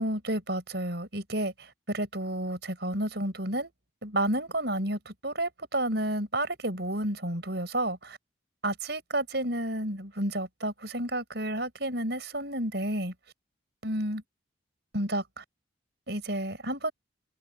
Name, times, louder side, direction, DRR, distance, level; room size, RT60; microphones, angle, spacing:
voice 1, 0.0-3.7 4.0-8.2 8.6-13.1 13.8-14.2 14.9-15.4 16.1-16.9, right 1 dB, 55° right, 6.3 m, -31 dB
open air
head